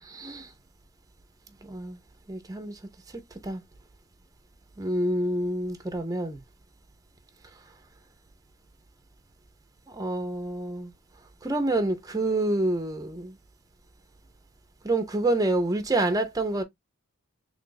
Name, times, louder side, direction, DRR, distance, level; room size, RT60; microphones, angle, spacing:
voice 1, 0.0-0.5 1.6-2.0 2.3-2.8 3.1-3.6 4.8-6.4 9.9-10.9 11.4-13.4 14.8-16.6, right 2 dB, 15° right, 0.6 m, -28 dB
3.2 x 2.4 x 3.9 m
head